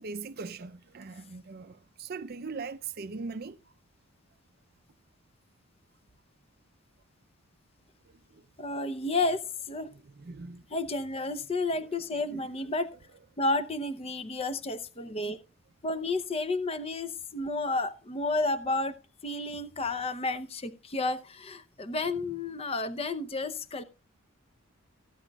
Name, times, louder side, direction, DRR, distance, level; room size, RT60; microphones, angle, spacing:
voice 1, 0.0-3.6 8.3-8.5 10.2-10.6 12.3-12.4, right 4 dB, 45° right, 0.5 m, -40 dB
voice 2, 8.6-9.9 10.7-12.9 13.4-15.4 15.8-19.0 19.2-23.8, left 2 dB, 25° left, 0.6 m, -31 dB
17.5 x 9.0 x 2.3 m
head